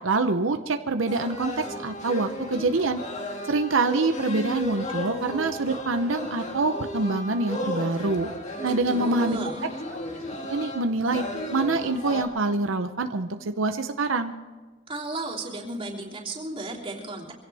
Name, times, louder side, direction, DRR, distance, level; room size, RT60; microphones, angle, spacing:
voice 1, 0.0-3.0 3.5-8.3 8.6-9.4 10.5-11.2 11.5-14.3, right 3 dB, 85° right, 7 dB, 0.8 m, -25 dB
sound 1, 1.1-12.2, left 1 dB, 35° left, 2.1 m, -34 dB
voice 2, 8.6-9.6 14.9-17.3, right 2 dB, 30° right, -3 dB, 3.1 m, -34 dB
24.5 x 16.5 x 3.5 m, 1.3 s
head